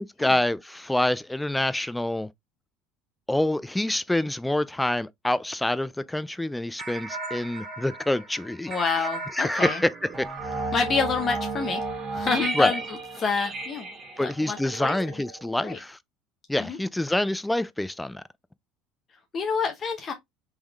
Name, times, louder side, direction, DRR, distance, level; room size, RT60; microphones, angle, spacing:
voice 1, 0.2-2.3 3.3-8.7 9.4-9.9 10.2-10.7 12.5-12.7 14.2-16.0 16.5-18.2, left 1 dB, 5° left, 0.3 m, -26 dB
sound 1, 6.8-15.7, right 3 dB, 35° right, 1.7 m, -34 dB
voice 2, 8.7-9.8 10.7-11.8 12.1-13.9 14.2-15.0 15.6-15.8 16.6-16.8 19.3-20.1, left 5 dB, 40° left, 0.9 m, -28 dB
3.6 x 3.1 x 3.4 m
supercardioid pair, 90°, 0 cm